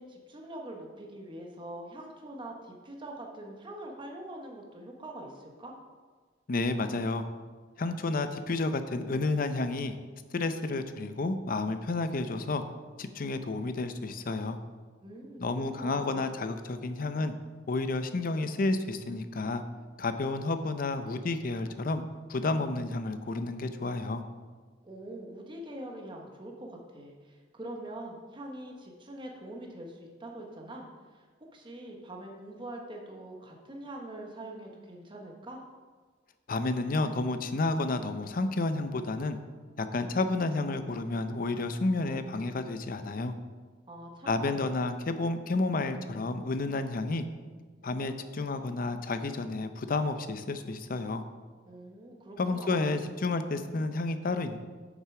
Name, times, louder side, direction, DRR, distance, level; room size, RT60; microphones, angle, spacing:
voice 1, 0.0-5.7 15.0-16.3 24.8-31.3 31.5-35.6 43.9-44.8 51.6-52.9, right 1 dB, 25° right, 1 dB, 1.1 m, -44 dB
voice 2, 6.5-7.2 7.8-9.9 10.3-12.6 13.0-14.6 15.4-17.3 17.7-19.6 20.0-22.0 22.3-24.2 36.5-39.4 39.8-43.3 44.3-47.2 47.8-51.2 52.4-54.6, left 3 dB, 50° left, 9 dB, 0.6 m, -31 dB
7.4 x 6.6 x 4.8 m, 1.5 s
head